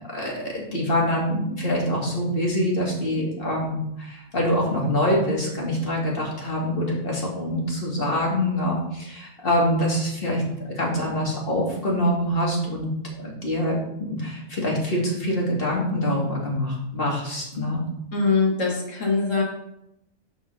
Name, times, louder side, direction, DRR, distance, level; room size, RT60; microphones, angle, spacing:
voice 1, 0.1-12.9 13.2-17.8, equal, 45° left, -2 dB, 2.1 m, -25 dB
voice 2, 18.1-19.4, left 4 dB, 70° left, -2 dB, 2.1 m, -22 dB
7.5 x 3.9 x 6.5 m, 0.81 s
omnidirectional pair, 1.4 m